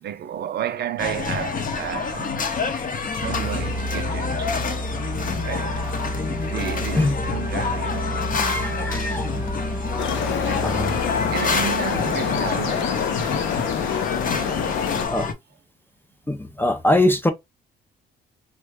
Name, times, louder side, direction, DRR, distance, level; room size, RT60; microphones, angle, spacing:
voice 1, 0.0-2.4 3.1-4.5 5.4-5.8 6.4-8.9 10.2-11.0 11.3-13.6 14.3-14.8, right 10 dB, 55° right, 0.5 m, -33 dB
sound 1, 1.0-15.3, left 5 dB, 45° left, 0.7 m, -28 dB
sound 2, 3.0-12.5, equal, 10° right, 0.9 m, -31 dB
voice 2, 8.1-9.6 10.6-10.9 15.1-15.3 16.3-17.3, left 1 dB, 10° left, 0.5 m, -23 dB
sound 3, 10.0-15.1, left 8 dB, 80° left, 0.6 m, -27 dB
3.1 x 2.2 x 3.4 m
cardioid pair, 90°, 20 cm